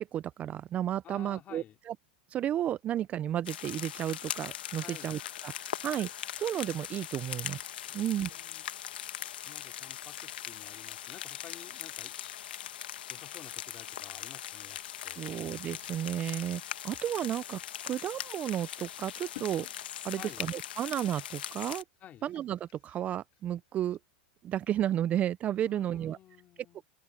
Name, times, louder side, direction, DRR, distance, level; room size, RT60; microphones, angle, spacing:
voice 1, 0.0-1.9 2.3-6.1 6.4-8.3 15.2-19.7 20.0-21.8 22.2-24.0 24.4-26.2, right 11 dB, 30° right, 0.4 m, -33 dB
voice 2, 1.0-1.8 4.8-5.2 7.9-8.6 9.5-12.1 13.1-14.8 15.0-15.3 20.2-20.4 22.0-22.2 25.6-26.8, left 11 dB, 30° left, 2.7 m, -52 dB
sound 1, 3.5-21.8, left 11 dB, 85° left, 1.2 m, -41 dB
sound 2, 5.2-6.9 8.0-8.6 9.2-9.3 10.1-10.2 10.8-11.3 12.1-12.4 12.9-18.2 18.5-18.6 19.3-20.7 21.1-24.0, left 20 dB, 65° left, 1.8 m, -58 dB
open air
supercardioid pair, 130°, 5 cm